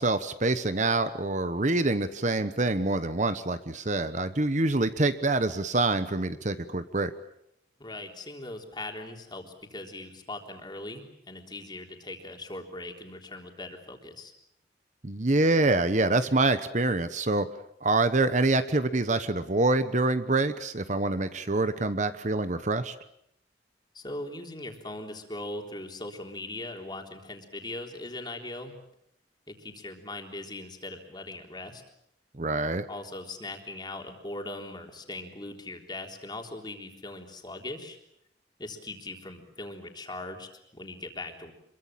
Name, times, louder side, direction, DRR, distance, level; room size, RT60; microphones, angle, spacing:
voice 1, 0.0-7.1 15.0-17.5 17.8-22.9 32.4-32.9, right 2 dB, 45° right, 11 dB, 1.1 m, -26 dB
voice 2, 7.8-14.3 23.9-28.7 29.5-31.8 32.9-38.0 38.6-41.5, left 2 dB, 25° left, 3 dB, 3.7 m, -40 dB
27.0 x 23.0 x 7.5 m, 0.75 s
head